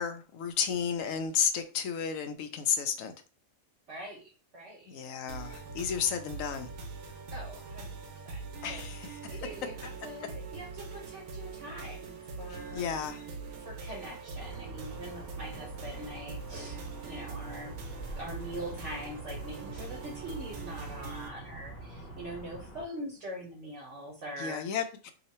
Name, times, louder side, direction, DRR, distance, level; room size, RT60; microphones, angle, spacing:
voice 1, 0.0-3.1 4.9-6.7 8.6-9.4 12.5-13.3 24.4-25.1, left 7 dB, 70° left, 0.9 m, -32 dB
voice 2, 3.9-4.9 7.3-8.9 9.3-12.8 13.6-17.7 18.1-24.6, right 1 dB, 55° right, 1.1 m, -43 dB
sound 1, 5.3-21.3, right 4 dB, 75° right, 1.1 m, -43 dB
sound 2, 14.3-22.8, right 1 dB, 45° left, 0.8 m, -46 dB
3.0 x 2.4 x 4.1 m
omnidirectional pair, 1.5 m